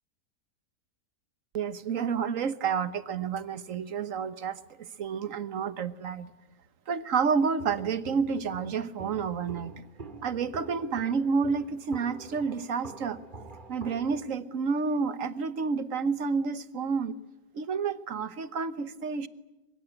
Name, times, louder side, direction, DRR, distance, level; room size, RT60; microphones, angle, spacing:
voice 1, 1.5-6.3 6.9-9.7 10.2-13.2 13.7-17.1 17.5-19.3, right 5 dB, 55° right, 13 dB, 1.4 m, -30 dB
Walk footsteps, 7.6-14.3, right 3 dB, 30° right, 2.4 m, -46 dB
24.5 x 22.5 x 9.1 m, 1.0 s
omnidirectional pair, 1.8 m